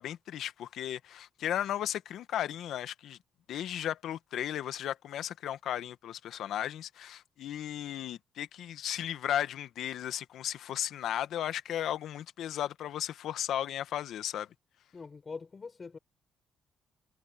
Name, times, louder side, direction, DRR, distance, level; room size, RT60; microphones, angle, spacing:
voice 1, 0.0-3.2 3.5-14.5, left 11 dB, 75° left, 1.3 m, -35 dB
voice 2, 14.9-16.0, left 4 dB, 35° left, 6.9 m, -43 dB
cardioid pair, 90°, 0 cm